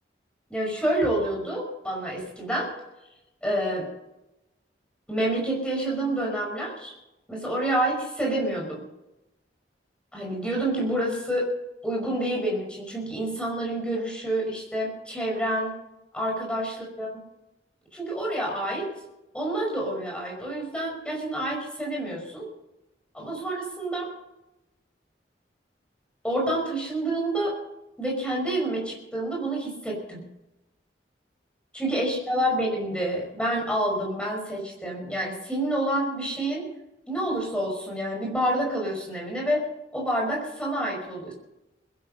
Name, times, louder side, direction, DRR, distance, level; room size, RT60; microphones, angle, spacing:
voice 1, 0.5-2.7 3.4-3.9 5.1-6.9 7.3-8.8 10.1-11.5 11.8-15.7 16.1-17.1 17.9-18.9 19.3-22.5 23.1-24.1 26.2-27.6 28.0-30.2 31.7-36.6 37.1-39.6 39.9-41.3, right 1 dB, 5° left, -1 dB, 5.5 m, -28 dB
21.0 x 11.5 x 5.4 m, 0.91 s
head